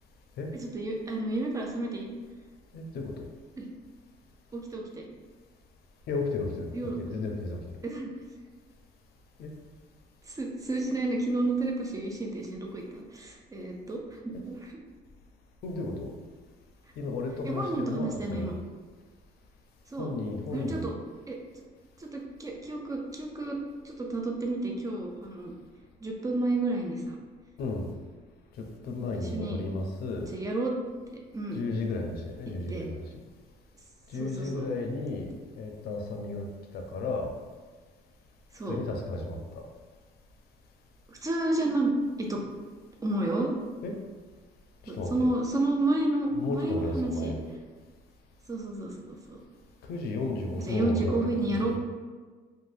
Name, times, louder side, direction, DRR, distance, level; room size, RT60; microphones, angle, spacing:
voice 1, 0.5-2.1 3.6-3.7 4.5-5.0 6.7-7.0 7.8-8.1 10.2-14.8 17.4-18.5 19.9-20.1 20.5-21.0 21.3-21.4 22.0-23.6 23.8-25.5 26.0-27.2 29.0-29.7 30.3-30.8 31.1-31.6 32.7-32.9 34.1-34.6 38.5-38.8 41.1-41.9 42.2-42.4 43.0-43.6 44.9-47.3 48.5-49.4 50.6-51.8, right 2 dB, 20° right, 0 dB, 0.4 m, -31 dB
voice 2, 2.7-3.3 6.1-7.6 9.4-9.5 15.6-16.1 17.0-18.5 20.0-20.9 27.6-27.9 28.6-30.3 31.5-33.0 34.1-36.5 36.7-37.3 38.7-39.7 43.8-44.0 44.9-45.3 46.4-47.4 49.9-51.2 51.6-51.8, left 3 dB, 65° left, 3 dB, 0.5 m, -33 dB
2.6 x 2.1 x 3.2 m, 1.4 s
cardioid pair, 110°, 17 cm